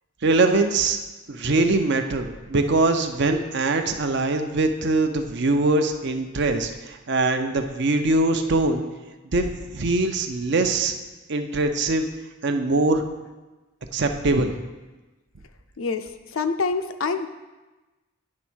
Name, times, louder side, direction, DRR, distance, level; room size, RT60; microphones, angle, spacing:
voice 1, 0.2-1.0 1.3-8.8 9.3-10.9 11.3-12.1 12.4-13.0 13.9-14.5, right 2 dB, 55° right, 6 dB, 0.6 m, -22 dB
voice 2, 15.8-17.3, left 4 dB, 70° left, 9 dB, 0.5 m, -26 dB
9.9 x 3.6 x 6.1 m, 1.1 s
head